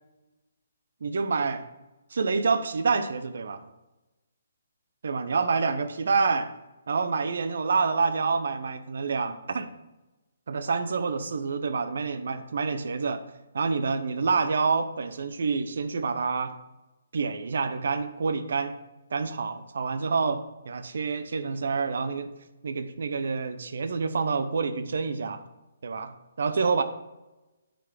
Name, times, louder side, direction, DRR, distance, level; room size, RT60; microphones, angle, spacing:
voice 1, 1.0-1.6 2.1-3.7 5.0-6.5 6.9-9.7 10.5-13.2 13.5-16.6 17.1-18.8 19.1-22.3 22.6-25.4 25.8-26.8, right 4 dB, 55° right, 11 dB, 0.6 m, -27 dB
8.9 x 4.7 x 4.8 m, 1.0 s
figure-of-eight pair, 135°, 0 cm